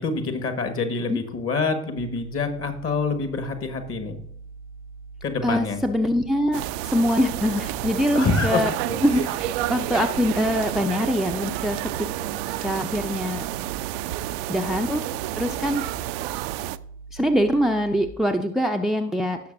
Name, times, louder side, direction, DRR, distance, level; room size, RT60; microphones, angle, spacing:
voice 1, 0.0-4.2 5.2-5.8 8.1-9.0, left 4 dB, 40° left, 7 dB, 1.6 m, -26 dB
sound 1, 2.0-18.1, right 4 dB, 55° left, 4.5 m, -43 dB
voice 2, 5.4-8.7 9.0-12.1 12.6-13.4 14.5-15.0 15.4-15.8 17.1-19.4, equal, ahead, 6 dB, 0.5 m, -23 dB
sound 2, 6.5-16.8, right 15 dB, 55° right, 0.4 m, -30 dB
17.0 x 6.5 x 2.6 m, 0.65 s
figure-of-eight pair, 60°, 37 cm